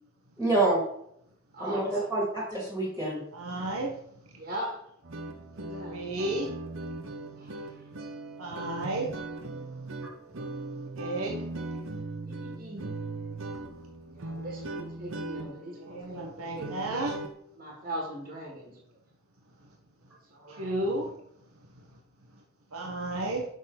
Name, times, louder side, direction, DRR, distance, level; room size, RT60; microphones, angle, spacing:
voice 1, 0.4-0.8 1.6-3.2 10.0-10.1, right 2 dB, 10° right, -6 dB, 2.1 m, -27 dB
voice 2, 1.5-2.1 4.4-4.8 5.5-6.0 7.4-7.6 12.3-13.0 14.1-17.0 17.6-18.8 20.3-20.7, right 1 dB, 40° right, -1 dB, 1.8 m, -40 dB
voice 3, 3.3-3.9 5.9-6.5 8.4-9.1 11.0-11.4 15.8-17.2 20.6-21.1 22.7-23.5, right 1 dB, 75° right, 0 dB, 1.2 m, -32 dB
sound 1, 5.0-17.3, right 2 dB, 60° right, 0.9 m, -39 dB
6.5 x 6.0 x 3.9 m, 0.70 s
head